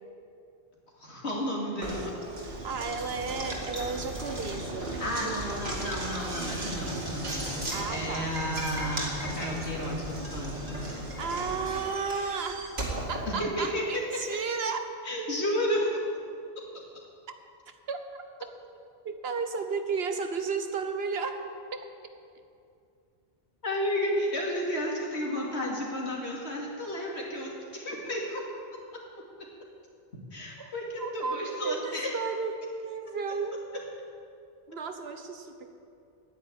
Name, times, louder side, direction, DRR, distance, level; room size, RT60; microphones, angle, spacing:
voice 1, 1.0-2.1 5.0-10.8 13.3-13.8 15.0-15.9 23.6-28.4 30.3-32.1, equal, 75° left, -3 dB, 2.8 m, -32 dB
Knock, 1.8-14.0, right 1 dB, 50° right, 2.3 m, -36 dB
voice 2, 2.4-6.0 7.7-8.3 11.2-12.7 13.1-15.0 17.7-18.5 19.0-21.5 21.7-21.8 30.6-30.7 31.0-33.6 34.7-35.7, right 5 dB, 65° right, 7 dB, 1.1 m, -34 dB
10.0 x 9.7 x 9.3 m, 2.5 s
omnidirectional pair, 1.1 m